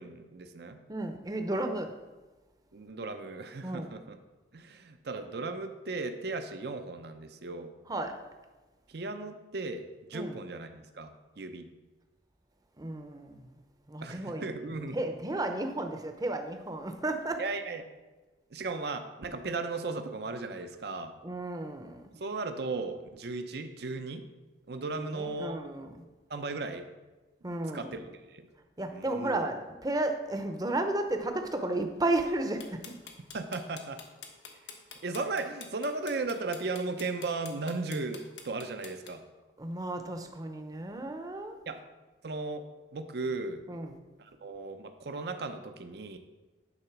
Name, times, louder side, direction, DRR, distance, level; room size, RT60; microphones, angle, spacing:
voice 1, 0.0-0.8 2.7-4.2 4.5-7.7 8.9-11.7 14.0-15.0 17.4-17.8 18.5-21.1 22.2-24.2 24.7-25.6 26.3-26.8 27.7-28.5 28.9-29.5 33.3-34.0 35.0-39.2 41.7-41.8 42.2-42.7 42.9-43.6 44.2-46.2, right 3 dB, 65° right, 8 dB, 0.6 m, -36 dB
voice 2, 0.9-1.9 3.6-3.9 7.9-8.2 10.1-10.4 12.8-13.5 13.9-14.5 14.9-17.4 21.2-22.0 24.9-25.9 27.4-27.9 28.8-32.9 39.6-41.6 43.7-43.9, right 2 dB, 20° right, 6 dB, 0.7 m, -33 dB
sound 1, 32.6-39.1, left 6 dB, 85° left, 1.1 m, -46 dB
9.8 x 3.9 x 5.9 m, 1.2 s
head